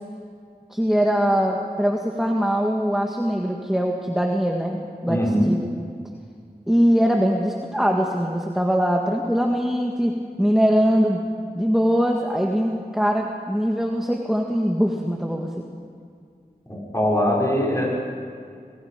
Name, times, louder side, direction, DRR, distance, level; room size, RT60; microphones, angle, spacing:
voice 1, 0.7-5.2 5.5-5.6 6.7-10.1 10.4-11.2 11.5-15.6, equal, ahead, 0 dB, 1.8 m, -22 dB
voice 2, 5.1-5.5 16.7-17.9, equal, 20° left, -3 dB, 6.3 m, -21 dB
27.0 x 21.0 x 5.2 m, 2.2 s
wide cardioid pair, 45°, 16 cm